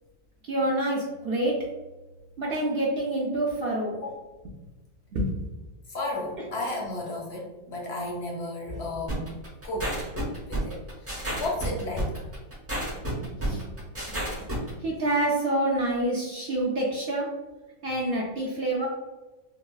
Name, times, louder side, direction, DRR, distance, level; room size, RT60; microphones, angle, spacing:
voice 1, 0.5-1.5 2.4-3.9 5.1-5.3 13.1-13.6 14.8-17.3 17.8-18.9, right 1 dB, 65° right, -3 dB, 0.6 m, -27 dB
voice 2, 5.9-9.3 9.6-10.0 10.4-12.3, left 2 dB, 65° left, -1 dB, 0.8 m, -33 dB
sound 1, 9.1-14.7, right 1 dB, 20° right, 0.4 m, -31 dB
3.9 x 2.0 x 2.3 m, 1.1 s
omnidirectional pair, 1.4 m